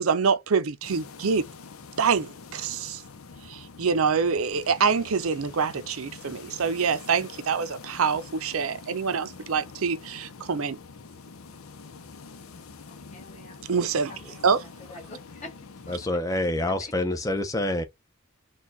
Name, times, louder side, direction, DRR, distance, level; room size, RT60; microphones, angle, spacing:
voice 1, 0.0-1.4 2.0-3.0 3.5-10.8 13.7-14.1 14.4-14.6, right 5 dB, 80° right, 0.5 m, -25 dB
sound 1, 0.8-16.1, left 4 dB, 80° left, 0.7 m, -45 dB
voice 2, 12.8-16.0 16.8-16.9, left 2 dB, 30° left, 1.5 m, -47 dB
voice 3, 15.9-17.8, left 1 dB, 15° left, 0.6 m, -27 dB
4.5 x 2.3 x 3.9 m
head